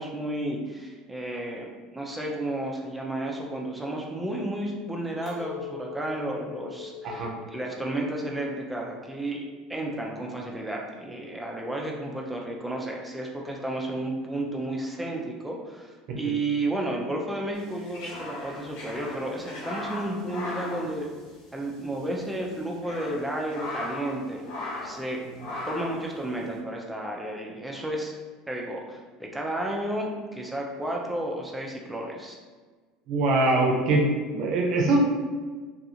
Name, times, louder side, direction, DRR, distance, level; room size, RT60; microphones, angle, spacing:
voice 1, 0.0-9.4 9.7-21.1 21.5-24.4 24.8-25.2 25.7-28.1 28.5-32.4, right 1 dB, 5° right, -1 dB, 0.5 m, -32 dB
Chink clink, 5.2-10.6, left 6 dB, 45° left, 1.4 m, -43 dB
sound 1, 17.6-21.7 22.0-22.1 22.6-24.2 24.4-25.1 25.4-26.0, left 2 dB, 80° left, 0.7 m, -37 dB
voice 2, 33.1-34.1 34.3-35.0, right 2 dB, 55° right, 1 dB, 0.6 m, -22 dB
2.4 x 2.4 x 2.8 m, 1.4 s
supercardioid pair, 95°, 0 cm